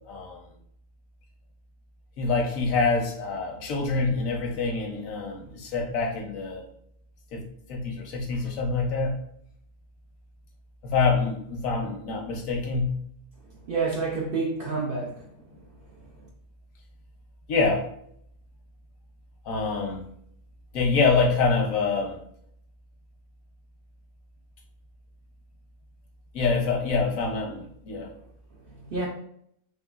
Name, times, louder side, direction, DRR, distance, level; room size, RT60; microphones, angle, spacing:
voice 1, 0.1-0.4 2.2-6.6 7.3-9.2 10.8-13.0 17.5-17.8 19.4-20.1 20.7-22.2 26.3-28.1, left 4 dB, 80° left, 2 dB, 1.1 m, -26 dB
voice 2, 13.7-15.2 28.9-29.1, right 4 dB, 60° right, -1 dB, 0.6 m, -28 dB
3.6 x 3.2 x 2.3 m, 0.69 s
omnidirectional pair, 1.4 m